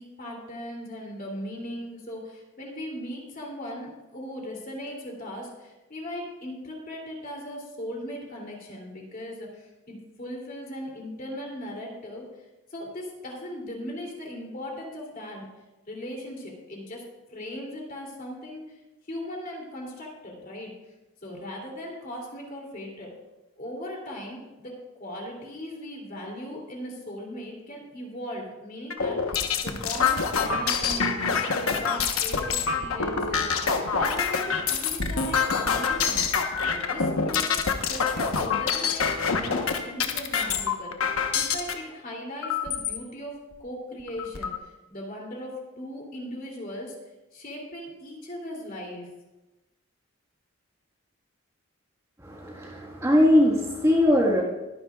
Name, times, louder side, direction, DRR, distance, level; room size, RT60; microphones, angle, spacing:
voice 1, 0.0-12.3 12.7-15.5 15.9-17.0 17.3-18.6 19.1-20.7 21.2-23.1 23.6-24.7 25.0-36.2 36.7-46.9 47.3-49.1, left 1 dB, 40° left, -1 dB, 2.9 m, -38 dB
sound 1, 28.9-41.7 42.4-43.0 43.5-43.6 43.9-44.6, left 5 dB, 80° left, 1.1 m, -26 dB
voice 2, 52.2-54.4, left 1 dB, 15° right, -3 dB, 1.6 m, -21 dB
22.5 x 9.9 x 2.4 m, 1.0 s
head